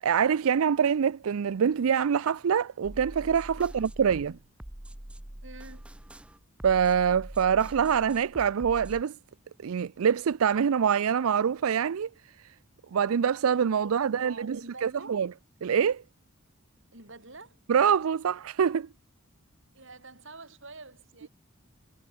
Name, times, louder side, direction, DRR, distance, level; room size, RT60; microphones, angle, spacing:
voice 1, 0.0-4.3 6.6-9.2 9.6-12.1 12.4-12.5 12.9-15.3 15.6-16.0 17.7-18.9, right 7 dB, 90° right, 0.4 m, -25 dB
sound 1, 2.8-9.0, right 1 dB, 5° right, 0.4 m, -44 dB
voice 2, 5.4-5.8 13.8-15.1 16.9-17.6 19.7-21.3, right 3 dB, 60° right, 7.8 m, -47 dB
head